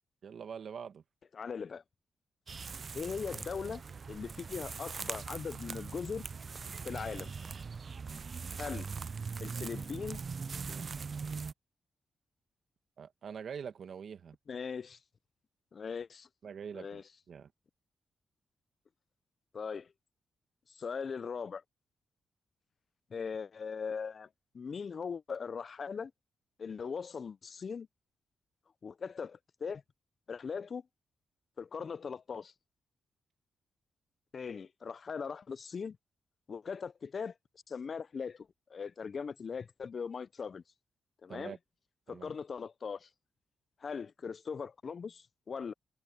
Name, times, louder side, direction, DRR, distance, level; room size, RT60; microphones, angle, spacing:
voice 1, 0.2-1.0 9.4-9.6 10.5-11.0 13.0-14.4 16.4-17.5 41.3-41.6 42.1-42.3, right 7 dB, 65° right, 1.8 m, -45 dB
voice 2, 1.3-1.8 2.9-3.8 4.1-6.2 6.8-7.3 8.5-8.9 9.4-10.2 14.5-15.0 15.7-16.3 16.7-17.0 19.5-19.9 20.7-21.6 23.1-24.3 24.5-26.1 26.6-27.9 28.8-29.8 30.3-30.9 31.6-32.5 34.3-36.0 36.5-37.3 37.7-40.6 41.2-41.6 42.1-43.1 43.8-45.7, left 6 dB, 55° left, 0.5 m, -40 dB
sound 1, 2.5-11.5, right 5 dB, 50° right, 0.3 m, -41 dB
cardioid pair, 65°, 0 cm